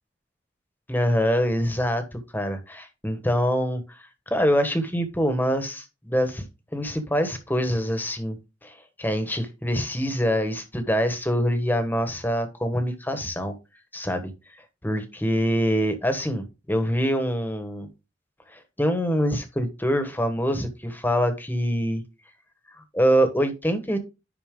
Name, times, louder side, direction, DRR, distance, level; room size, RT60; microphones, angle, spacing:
voice 1, 0.9-3.8 4.3-6.4 6.7-8.4 8.6-8.7 9.0-13.5 13.9-14.3 14.8-17.9 18.5-22.0 22.9-24.0, equal, 10° left, 8 dB, 1.2 m, -25 dB
10.5 x 4.2 x 3.7 m, 0.27 s
head